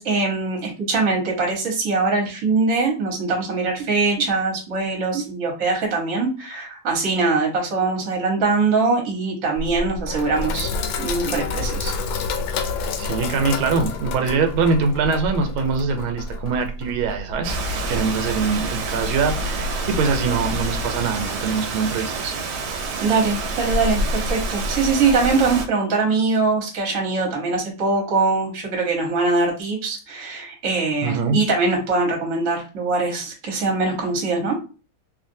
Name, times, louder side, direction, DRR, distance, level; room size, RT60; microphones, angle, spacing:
voice 1, 0.0-10.7 11.0-11.9 23.0-34.6, right 3 dB, 45° right, 0 dB, 1.3 m, -22 dB
Sink (filling or washing), 9.6-20.6, left 3 dB, 80° left, 1.4 m, -29 dB
voice 2, 13.0-17.6 17.9-22.3 31.0-31.4, right 5 dB, 90° right, 5 dB, 1.5 m, -23 dB
Rain, 17.4-25.7, right 2 dB, 75° right, 1.3 m, -27 dB
3.1 x 2.5 x 2.6 m, 0.34 s
omnidirectional pair, 2.2 m